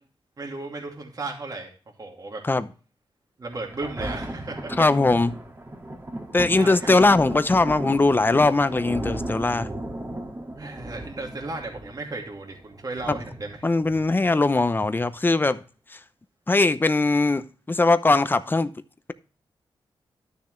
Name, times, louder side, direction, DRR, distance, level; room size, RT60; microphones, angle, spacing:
voice 1, 0.4-1.7 2.0-2.4 3.4-4.8 6.6-6.9 10.6-13.7, right 2 dB, 40° right, 2.6 m, -35 dB
Thunder, 3.5-14.5 15.1-15.2, right 1 dB, 25° right, 2.0 m, -36 dB
voice 2, 4.8-5.3 6.3-9.7 13.6-15.6 16.5-18.7, left 3 dB, 20° left, 0.7 m, -20 dB
12.5 x 6.8 x 3.2 m
wide cardioid pair, 95°, 9 cm